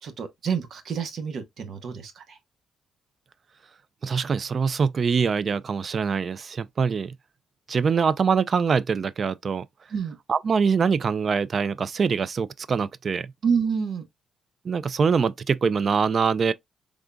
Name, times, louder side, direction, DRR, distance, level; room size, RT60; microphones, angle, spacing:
voice 1, 0.0-2.4 9.9-10.2 13.4-14.1, right 6 dB, 60° right, 0.9 m, -28 dB
voice 2, 4.0-7.2 7.7-9.6 10.3-13.3 14.6-16.5, right 5 dB, 45° right, 0.3 m, -24 dB
3.8 x 3.5 x 2.2 m
cardioid pair, 90°, 0 cm